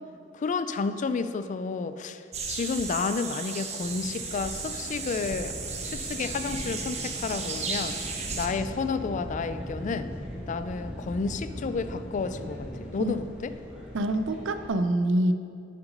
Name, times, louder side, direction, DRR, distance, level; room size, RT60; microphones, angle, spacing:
voice 1, 0.3-2.2 2.5-5.5 5.8-8.0 8.4-10.1 10.5-13.5, left 4 dB, 40° left, 12 dB, 0.3 m, -31 dB
sound 1, 2.3-8.5, right 4 dB, 35° right, 0.8 m, -35 dB
sound 2, 3.8-14.7, equal, 5° right, 1.4 m, -40 dB
voice 2, 13.9-15.3, right 1 dB, 75° right, 10 dB, 0.5 m, -25 dB
7.6 x 5.9 x 5.3 m, 2.4 s
head